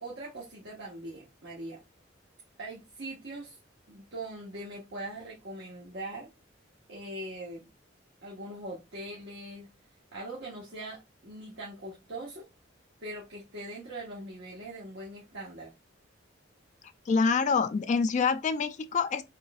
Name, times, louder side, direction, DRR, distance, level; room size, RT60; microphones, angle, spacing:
voice 1, 0.0-1.8 2.6-3.6 3.9-6.3 6.9-7.7 8.2-9.7 10.1-12.5 13.0-15.7, right 1 dB, 65° right, 1.2 m, -41 dB
voice 2, 17.1-19.2, left 5 dB, 40° left, 0.3 m, -26 dB
4.3 x 3.1 x 2.3 m
head